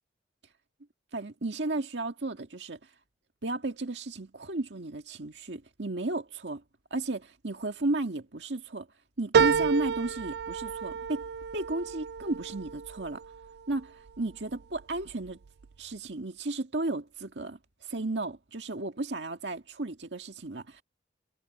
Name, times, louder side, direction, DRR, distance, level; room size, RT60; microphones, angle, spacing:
voice 1, 1.1-2.9 3.4-6.6 6.9-8.9 9.2-11.2 11.5-13.2 13.7-15.4 15.8-20.8, right 2 dB, 85° right, 1.8 m, -34 dB
sound 1, 9.3-14.1 14.6-15.3 15.7-15.8, right 6 dB, 65° right, 0.4 m, -30 dB
head